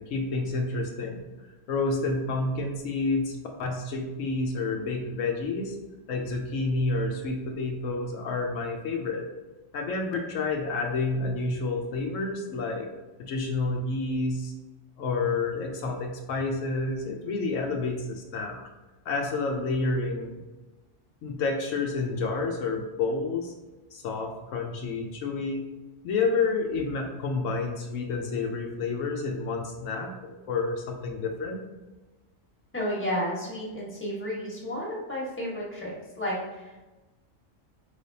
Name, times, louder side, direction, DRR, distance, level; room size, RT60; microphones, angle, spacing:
voice 1, 0.0-5.8 6.1-9.3 9.7-12.9 13.2-14.5 15.0-18.6 19.0-20.4 21.2-23.5 23.9-25.7 26.0-31.6, left 3 dB, 85° left, 2 dB, 1.0 m, -29 dB
voice 2, 32.7-36.8, equal, 10° left, -4 dB, 1.1 m, -32 dB
4.5 x 3.4 x 2.7 m, 1.1 s
omnidirectional pair, 1.3 m